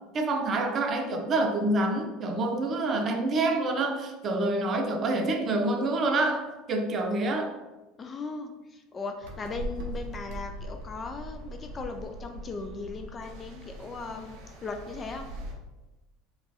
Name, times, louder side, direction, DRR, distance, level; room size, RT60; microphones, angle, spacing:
voice 1, 0.1-7.5, right 2 dB, 30° right, 4 dB, 0.6 m, -27 dB
voice 2, 8.0-15.3, left 4 dB, 25° left, 5 dB, 0.4 m, -38 dB
sound 1, 9.2-15.5, right 1 dB, 65° right, 1.0 m, -41 dB
4.8 x 2.4 x 4.0 m, 1.1 s
supercardioid pair, 130°, 0 cm